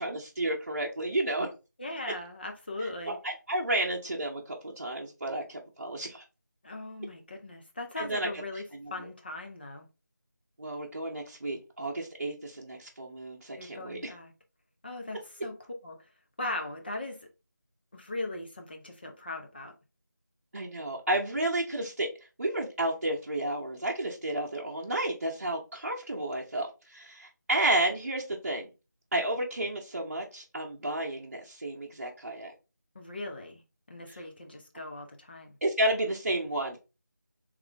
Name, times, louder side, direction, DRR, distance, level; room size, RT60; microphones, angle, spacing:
voice 1, 0.0-1.5 3.1-6.2 8.0-8.3 8.7-8.9 10.6-14.1 20.5-22.1 22.4-28.7 29.1-32.5 35.6-36.8, right 1 dB, 40° right, 0.8 m, -31 dB
voice 2, 1.8-3.2 6.6-8.6 8.9-9.9 13.6-14.3 14.8-15.6 15.8-16.0 16.4-17.3 17.9-19.7 32.9-33.6 33.9-35.6, left 2 dB, 30° left, 0.7 m, -39 dB
3.5 x 3.2 x 3.4 m
figure-of-eight pair, 170°, 10 cm